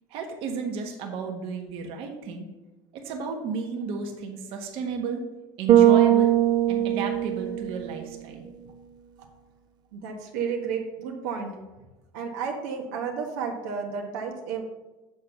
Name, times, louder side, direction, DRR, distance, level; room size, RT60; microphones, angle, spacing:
voice 1, 0.1-2.5 2.9-5.2 5.6-6.3 6.7-8.5, right 5 dB, 60° right, 2 dB, 1.4 m, -33 dB
Bass guitar, 5.7-8.0, right 12 dB, 40° right, 0.6 m, -20 dB
voice 2, 9.9-11.6 12.1-14.6, right 6 dB, 85° right, 1 dB, 1.4 m, -32 dB
7.2 x 4.6 x 6.8 m, 1.1 s
cardioid pair, 140°, 11 cm